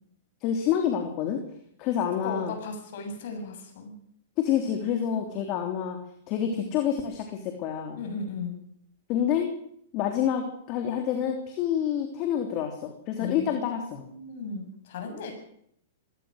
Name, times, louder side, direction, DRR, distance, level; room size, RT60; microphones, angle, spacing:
voice 1, 0.4-1.4 1.8-2.5 4.4-6.0 6.3-8.0 9.1-9.5 9.9-14.0, left 9 dB, 40° left, 4 dB, 3.2 m, -28 dB
voice 2, 2.2-3.9 8.0-8.6 13.2-15.3, left 4 dB, 60° left, 5 dB, 7.2 m, -36 dB
23.0 x 17.5 x 6.6 m, 0.69 s
hypercardioid pair, 120°, 0 cm